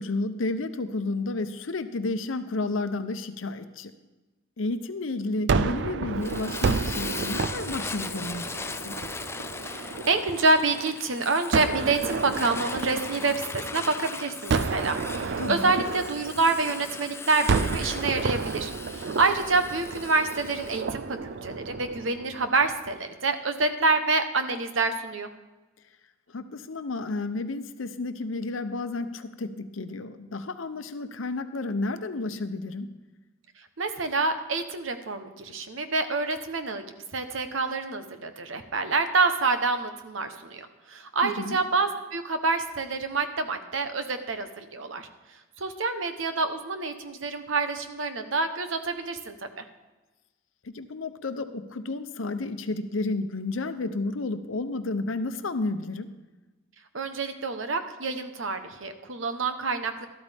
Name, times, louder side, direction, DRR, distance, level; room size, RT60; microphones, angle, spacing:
voice 1, 0.0-3.9 4.6-8.5 8.9-9.0 15.4-15.7 26.3-32.9 41.2-41.6 50.6-56.1, left 2 dB, 85° left, 10 dB, 0.8 m, -31 dB
Gunshot gunfire, 5.5-10.6 11.5-13.9 14.5-17.0 17.5-22.7, right 4 dB, 60° right, 0.5 m, -31 dB
Fire, 6.2-20.8, left 4 dB, 15° left, 0.4 m, -39 dB
voice 2, 9.6-25.3 33.8-36.8 37.1-45.1 45.6-49.6 56.9-60.1, right 3 dB, 80° right, 9 dB, 1.0 m, -27 dB
13.0 x 12.5 x 3.5 m, 1.2 s
head